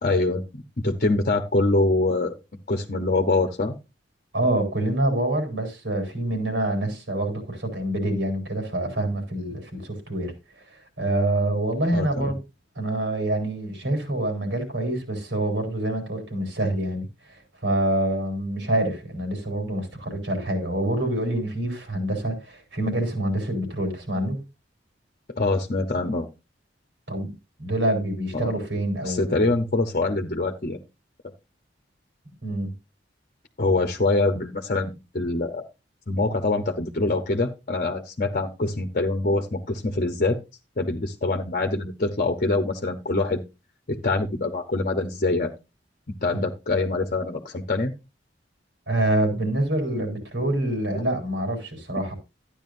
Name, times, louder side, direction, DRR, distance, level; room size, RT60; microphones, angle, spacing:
voice 1, 0.0-2.4 2.7-3.7 11.9-12.3 25.3-26.3 28.3-28.5 29.0-30.8 33.6-35.7 36.1-40.4 40.8-43.4 43.9-45.5 46.2-47.9 50.9-51.0, left 2 dB, 45° left, 0.9 m, -24 dB
voice 2, 4.3-12.4 12.8-24.4 27.1-27.3 27.6-29.5 32.4-32.7 48.9-52.1, right 1 dB, 85° right, 4.4 m, -26 dB
13.0 x 10.0 x 2.6 m
head